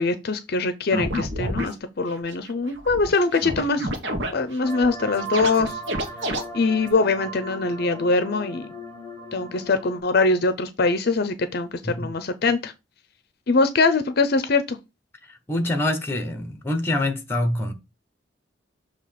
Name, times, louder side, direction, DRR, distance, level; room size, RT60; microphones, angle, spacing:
voice 1, 0.0-3.9 4.3-5.8 6.5-8.7 9.3-12.7 13.5-14.8, left 3 dB, 55° left, 0.6 m, -23 dB
sound 1, 0.9-1.7 2.2-2.3 2.5-2.6 2.8-3.1 3.4-4.3 4.6-4.9 5.2-6.4, right 1 dB, 80° right, 1.3 m, -28 dB
sound 2, 4.6-10.0, right 1 dB, 25° right, 3.3 m, -37 dB
voice 2, 15.3-17.7, left 1 dB, 15° left, 1.2 m, -25 dB
6.8 x 3.0 x 5.8 m
head